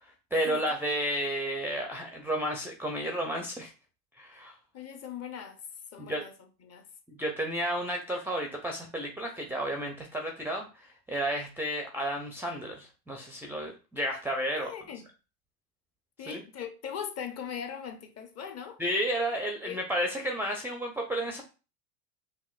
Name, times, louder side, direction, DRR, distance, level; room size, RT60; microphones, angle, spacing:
voice 1, 0.0-3.7 4.2-4.5 6.0-6.2 7.1-14.7 16.3-16.4 18.8-21.4, equal, 5° right, 0.4 m, -32 dB
voice 2, 4.7-5.6 5.9-6.3 6.6-6.9 14.6-15.1 16.2-18.8 19.6-19.8, left 8 dB, 35° left, 0.8 m, -40 dB
5.3 x 2.5 x 2.4 m
hypercardioid pair, 90°, 47 cm